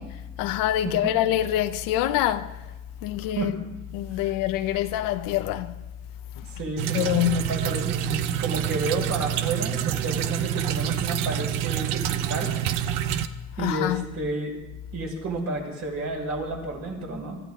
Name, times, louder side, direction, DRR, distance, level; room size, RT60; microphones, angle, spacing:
voice 1, 0.4-2.5 3.0-3.5 3.9-5.8 6.9-7.5 13.6-14.0, left 13 dB, 80° left, 0.8 m, -25 dB
voice 2, 6.5-12.6 13.6-14.6 14.9-17.4, right 2 dB, 55° right, 5.8 m, -31 dB
sound 1, 6.8-13.3, right 11 dB, 80° right, 0.9 m, -27 dB
25.0 x 14.5 x 3.7 m
cardioid pair, 120°, 32 cm